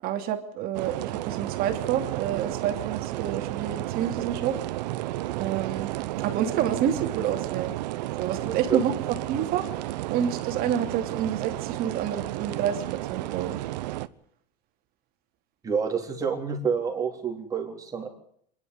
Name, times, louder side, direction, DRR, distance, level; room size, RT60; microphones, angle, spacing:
voice 1, 0.0-4.6 5.4-5.9 6.2-7.7 8.2-8.9 9.3-9.7 10.1-12.8 13.1-13.6, right 9 dB, 45° right, 6 dB, 2.7 m, -28 dB
sound 1, 0.7-14.1, right 16 dB, 85° right, 1.0 m, -32 dB
voice 2, 8.4-8.8 15.6-18.1, right 6 dB, 15° right, 3 dB, 3.7 m, -28 dB
25.0 x 11.0 x 9.5 m, 0.65 s
supercardioid pair, 150°, 21 cm